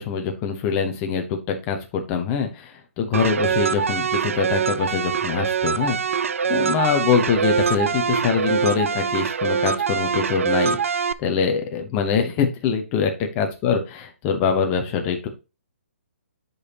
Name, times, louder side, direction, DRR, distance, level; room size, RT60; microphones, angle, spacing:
voice 1, 0.0-6.2 6.5-10.8 11.2-15.3, left 6 dB, 15° left, 4 dB, 0.9 m, -24 dB
sound 1, 3.1-11.1, right 6 dB, 75° right, 0.6 m, -23 dB
10.5 x 5.4 x 2.9 m, 0.30 s
hypercardioid pair, 180°, 7 cm